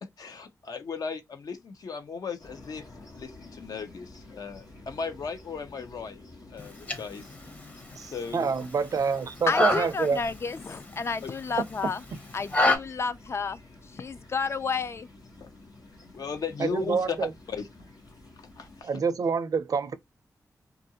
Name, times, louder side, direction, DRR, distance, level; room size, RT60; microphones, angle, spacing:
voice 1, 0.0-6.2 6.5-7.4 8.0-8.5 11.2-11.3 15.4-15.5 16.1-17.2 17.5-17.7 18.6-18.9, left 5 dB, 75° left, 0.7 m, -36 dB
sound 1, 2.4-18.8, left 2 dB, 90° left, 1.3 m, -50 dB
sound 2, 6.6-12.8, left 2 dB, 25° left, 0.7 m, -30 dB
voice 2, 8.0-10.2 11.8-11.9 16.6-17.3 18.8-19.9, right 5 dB, 65° right, 0.5 m, -27 dB
voice 3, 9.5-12.0 12.3-15.1, left 5 dB, 40° left, 0.3 m, -31 dB
2.8 x 2.5 x 2.7 m
wide cardioid pair, 100°, 6 cm